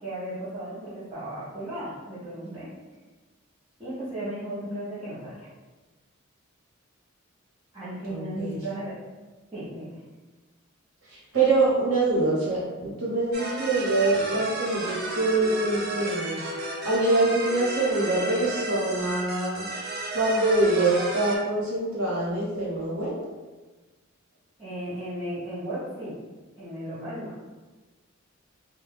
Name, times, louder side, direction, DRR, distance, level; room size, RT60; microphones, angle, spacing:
voice 1, 0.0-2.7 3.8-5.5 7.7-8.9 9.5-10.0 24.6-26.1 26.6-27.3, right 1 dB, 20° right, -14 dB, 0.8 m, -35 dB
voice 2, 8.1-8.6 11.1-16.4 16.8-19.7 20.1-23.1, right 2 dB, 85° right, -6 dB, 1.1 m, -24 dB
sound 1, 13.3-21.4, right 2 dB, 50° right, 0.5 m, -33 dB
2.3 x 2.2 x 3.3 m, 1.2 s
head